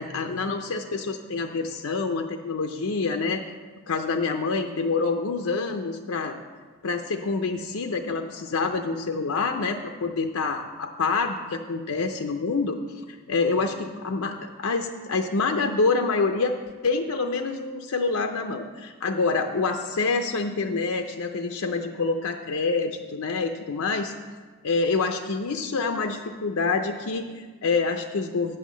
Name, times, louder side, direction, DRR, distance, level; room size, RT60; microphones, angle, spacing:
voice 1, 0.0-3.4 3.9-6.4 6.8-12.8 13.1-16.6 16.8-24.1 24.6-28.6, left 4 dB, 70° left, 5 dB, 0.5 m, -27 dB
9.3 x 5.6 x 7.3 m, 1.5 s
head